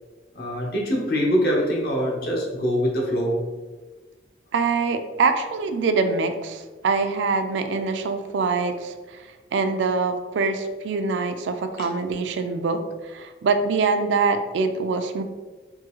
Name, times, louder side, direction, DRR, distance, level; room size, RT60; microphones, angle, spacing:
voice 1, 0.3-3.4 11.8-11.9, equal, 55° left, -1 dB, 0.8 m, -23 dB
voice 2, 4.5-9.2 9.5-15.2, right 4 dB, 80° right, 8 dB, 0.4 m, -24 dB
3.6 x 2.7 x 3.0 m, 1.3 s
head